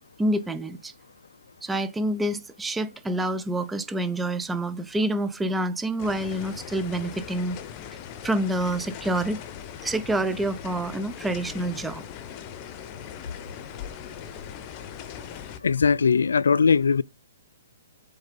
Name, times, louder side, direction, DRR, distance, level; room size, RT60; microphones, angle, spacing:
voice 1, 0.2-0.9 1.6-7.6 8.2-9.4 9.8-12.0, right 1 dB, 5° right, 0.6 m, -27 dB
sound 1, 6.0-15.6, left 9 dB, 30° left, 0.9 m, -40 dB
voice 2, 15.6-17.0, left 5 dB, 90° left, 0.3 m, -20 dB
7.9 x 3.6 x 5.2 m
hypercardioid pair, 150°, 0 cm